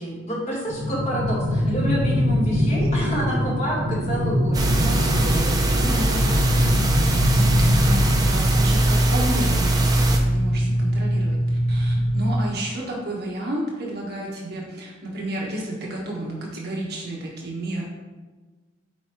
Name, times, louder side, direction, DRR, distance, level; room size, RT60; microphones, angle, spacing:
voice 1, 0.0-5.8, equal, 35° left, -5 dB, 2.0 m, -29 dB
sound 1, 0.7-8.7, left 1 dB, 75° right, 1.1 m, -24 dB
sound 2, 4.5-10.2, right 2 dB, 20° right, 0.6 m, -22 dB
voice 2, 5.7-6.4 7.2-17.8, right 1 dB, 55° right, -3 dB, 1.5 m, -31 dB
sound 3, 6.5-12.5, equal, 80° left, 0.6 m, -23 dB
8.2 x 4.7 x 3.2 m, 1.3 s
head